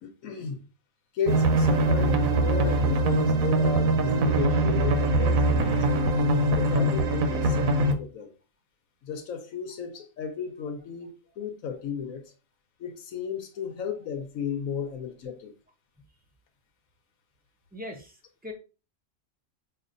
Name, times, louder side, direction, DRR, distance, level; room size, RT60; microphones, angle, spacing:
voice 1, 0.0-0.6 1.1-5.8 6.5-8.3 9.0-12.2 12.8-15.5, left 6 dB, 80° left, 1.0 m, -34 dB
sound 1, 1.3-7.9, right 2 dB, 85° right, 1.0 m, -23 dB
voice 2, 17.7-18.5, left 1 dB, 10° right, 0.5 m, -41 dB
5.8 x 2.5 x 2.5 m
omnidirectional pair, 1.4 m